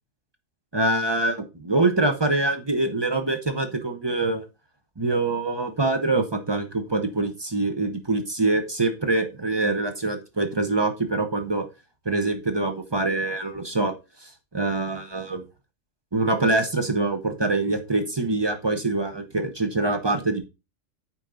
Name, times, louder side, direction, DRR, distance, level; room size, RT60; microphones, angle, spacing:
voice 1, 0.7-4.5 5.0-11.7 12.0-13.9 14.2-15.4 16.1-20.4, right 2 dB, 25° right, 7 dB, 0.9 m, -24 dB
8.8 x 4.5 x 3.9 m, 0.27 s
omnidirectional pair, 1.3 m